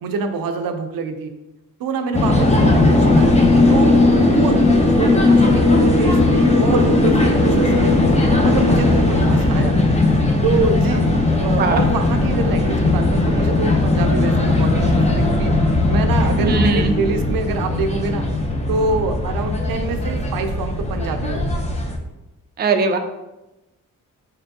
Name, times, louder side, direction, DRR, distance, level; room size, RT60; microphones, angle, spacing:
voice 1, 0.0-1.3 1.8-3.3 3.7-4.0 4.3-4.6 4.9-7.9 8.3-11.1 11.4-15.5 15.9-18.3 18.7-21.6, right 4 dB, 90° right, 6 dB, 0.5 m, -25 dB
sound 1, 2.1-22.0, left 2 dB, 20° left, 0.6 m, -17 dB
voice 2, 5.0-5.4 11.6-11.8 16.4-16.9 22.6-23.0, right 3 dB, 30° right, 5 dB, 0.4 m, -20 dB
4.4 x 3.3 x 2.7 m, 0.99 s
cardioid pair, 90°, 34 cm